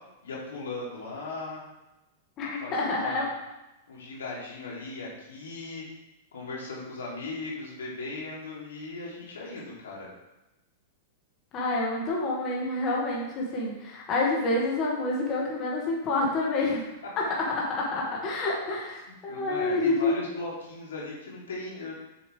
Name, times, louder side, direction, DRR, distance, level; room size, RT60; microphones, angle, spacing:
voice 1, 0.2-1.6 2.6-3.2 3.9-5.9 6.3-10.1 19.1-21.9, left 3 dB, 85° left, -4 dB, 2.9 m, -38 dB
voice 2, 2.4-3.3 11.5-16.8 17.2-17.3 17.7-20.2, left 2 dB, 35° left, -3 dB, 1.9 m, -28 dB
7.0 x 7.0 x 3.4 m, 1.0 s
hypercardioid pair, 120°, 0 cm